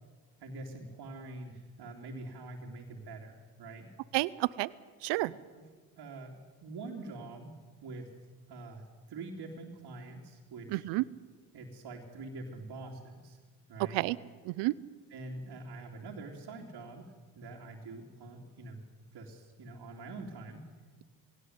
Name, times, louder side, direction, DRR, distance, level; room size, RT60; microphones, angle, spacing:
voice 1, 0.4-3.9 5.5-5.7 6.0-6.3 6.6-8.1 8.5-8.8 9.1-10.8 11.5-13.4 13.7-14.0 15.1-18.8 19.1-20.6, right 2 dB, 65° right, -2 dB, 3.3 m, -45 dB
voice 2, 4.1-4.7 5.0-5.3 10.7-11.0 13.9-14.2 14.5-14.7, right 20 dB, 80° right, 20 dB, 0.7 m, -30 dB
21.0 x 17.5 x 9.6 m, 1.5 s
supercardioid pair, 70°, 42 cm